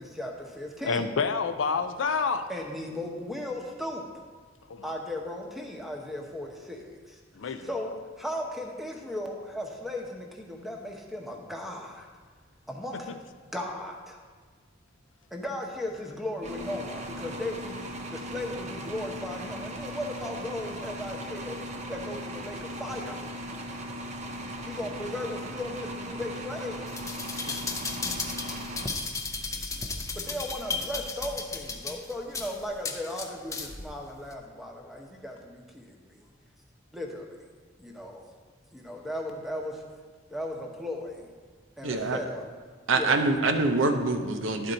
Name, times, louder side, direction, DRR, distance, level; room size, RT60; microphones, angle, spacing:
voice 1, 0.0-1.1 2.5-4.1 4.8-12.1 12.7-13.1 13.5-14.2 15.3-21.6 21.9-23.2 24.7-27.0 30.1-36.3 36.9-37.3 37.8-38.2 38.7-39.8 40.3-41.3 41.8-42.5 42.9-43.7, left 1 dB, ahead, 0 dB, 0.8 m, -36 dB
voice 2, 0.9-2.5 4.7-5.0 7.3-7.7 27.5-27.6, left 5 dB, 75° left, 9 dB, 0.5 m, -28 dB
sound 1, 16.4-29.4, equal, 35° right, 0.7 m, -38 dB
sound 2, 26.9-33.9 34.3-34.4, left 4 dB, 15° left, 0.5 m, -34 dB
voice 3, 41.8-42.2 42.9-44.7, right 3 dB, 75° right, 5 dB, 0.7 m, -25 dB
11.0 x 4.4 x 3.9 m, 1.5 s
head